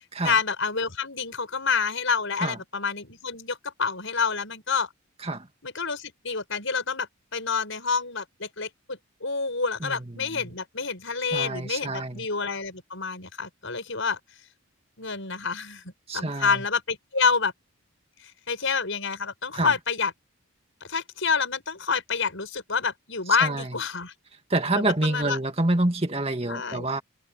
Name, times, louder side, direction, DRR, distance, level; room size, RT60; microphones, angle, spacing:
voice 1, 0.2-4.9 5.6-14.2 15.0-17.5 18.5-20.1 20.9-24.1 24.7-25.4 26.4-26.8, left 5 dB, 60° left, 6.4 m, -28 dB
voice 2, 9.8-10.6 11.3-12.3 16.1-16.6 19.5-19.8 23.4-23.8 24.5-27.0, right 2 dB, 25° right, 2.1 m, -27 dB
head